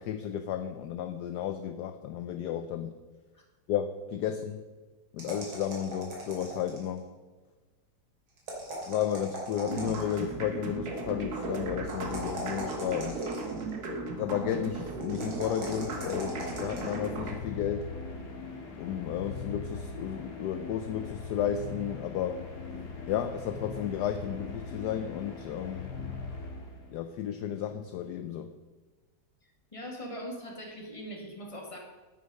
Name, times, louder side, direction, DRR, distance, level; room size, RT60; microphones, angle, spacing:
voice 1, 0.0-3.0 3.7-4.6 5.1-7.1 8.9-13.2 14.2-17.9 18.8-22.4 23.1-25.9 26.9-28.5, left 9 dB, 70° left, 9 dB, 1.0 m, -33 dB
sound 1, 5.2-7.0 8.4-10.3 11.9-13.7 15.0-17.0, right 1 dB, 85° right, 3.6 m, -41 dB
sound 2, 9.7-17.3, right 2 dB, 55° right, 1.8 m, -36 dB
sound 3, 15.4-27.1, left 4 dB, 55° left, 2.4 m, -41 dB
voice 2, 29.7-31.8, equal, 15° left, 0 dB, 1.9 m, -41 dB
9.8 x 8.9 x 5.4 m, 1.3 s
omnidirectional pair, 2.2 m